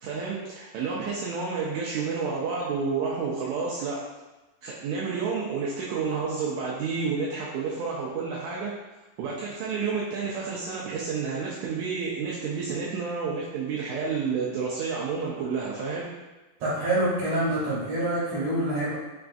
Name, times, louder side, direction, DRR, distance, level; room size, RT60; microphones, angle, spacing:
voice 1, 0.0-4.0 4.6-8.7 9.2-16.1, right 5 dB, 85° right, -6 dB, 1.6 m, -30 dB
voice 2, 16.6-19.0, right 1 dB, 65° right, -8 dB, 2.1 m, -26 dB
5.8 x 2.5 x 2.3 m, 1.1 s
omnidirectional pair, 3.7 m